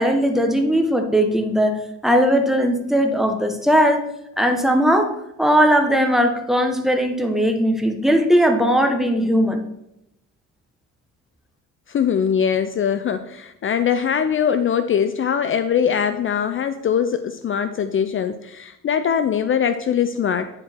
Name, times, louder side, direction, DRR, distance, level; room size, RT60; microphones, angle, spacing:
voice 1, 0.0-4.1 4.4-9.6, equal, ahead, 4 dB, 1.1 m, -18 dB
voice 2, 11.9-20.5, left 8 dB, 45° left, 10 dB, 0.5 m, -22 dB
9.8 x 4.6 x 4.4 m, 0.81 s
cardioid pair, 90°, 30 cm